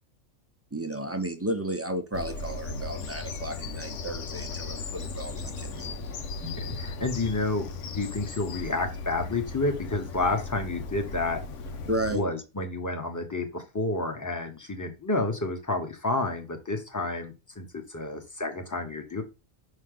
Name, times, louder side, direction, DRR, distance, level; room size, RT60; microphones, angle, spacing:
voice 1, 0.7-6.2 11.9-12.2, right 1 dB, 15° right, 0.6 m, -33 dB
Bird vocalization bird call bird song, 2.1-12.2, left 4 dB, 85° left, 1.1 m, -37 dB
voice 2, 6.4-7.7 7.9-11.4 12.1-19.2, left 2 dB, 15° left, 1.1 m, -30 dB
5.6 x 5.0 x 3.8 m
omnidirectional pair, 1.2 m